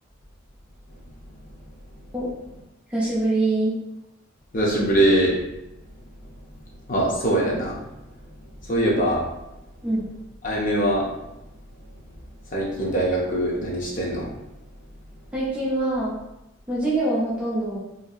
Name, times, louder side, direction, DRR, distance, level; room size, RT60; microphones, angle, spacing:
voice 1, 2.9-3.8 9.8-10.1 15.3-16.2 16.7-17.8, right 2 dB, 5° right, -7 dB, 0.5 m, -24 dB
voice 2, 4.5-5.4 6.9-7.8 8.6-9.2 10.4-11.1 12.5-14.3, right 1 dB, 40° left, -4 dB, 0.6 m, -22 dB
2.6 x 2.6 x 2.3 m, 0.91 s
head